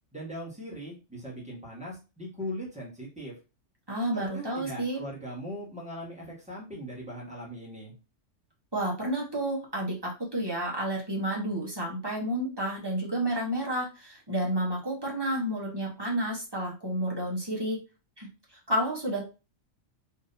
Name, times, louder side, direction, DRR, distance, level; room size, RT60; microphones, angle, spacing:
voice 1, 0.1-3.4 4.1-7.9, equal, 5° right, -6 dB, 1.3 m, -39 dB
voice 2, 3.9-5.0 8.7-17.8 18.2-19.3, right 1 dB, 20° right, -3 dB, 1.0 m, -30 dB
3.7 x 2.7 x 2.7 m, 0.30 s
omnidirectional pair, 1.3 m